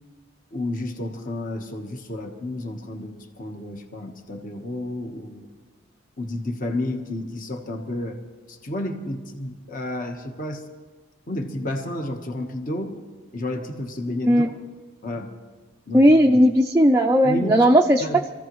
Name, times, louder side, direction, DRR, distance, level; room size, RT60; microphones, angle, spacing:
voice 1, 0.5-5.5 6.2-8.2 8.5-10.6 11.3-13.0 13.3-14.6 15.0-15.3 15.9-16.1 17.2-17.7 18.0-18.2, left 1 dB, 40° left, 3 dB, 1.2 m, -31 dB
voice 2, 15.9-18.1, equal, 10° right, 1 dB, 0.4 m, -16 dB
25.5 x 15.0 x 3.1 m, 1.3 s
head